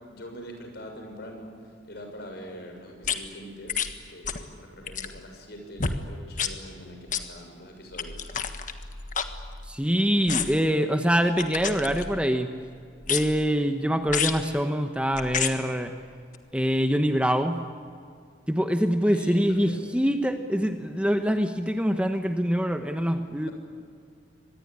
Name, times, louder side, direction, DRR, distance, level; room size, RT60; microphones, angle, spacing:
voice 1, 0.1-1.5 1.9-3.8 4.1-8.3 19.1-19.8, equal, 60° left, 3 dB, 6.7 m, -43 dB
sound 1, 3.0-3.2 3.7-3.9 4.2-4.5 4.8-5.2 5.8-6.0 6.3-6.5 7.1-7.2 7.9-9.8 10.3-10.7 11.4-12.3 13.0-13.5 14.1-14.4 15.1-15.5 16.3-16.4, left 7 dB, 45° left, 1.6 m, -30 dB
voice 2, 9.6-12.5 13.1-15.9 16.5-17.6 18.5-23.5, equal, 5° right, 6 dB, 1.1 m, -24 dB
25.0 x 20.5 x 9.9 m, 2.2 s
head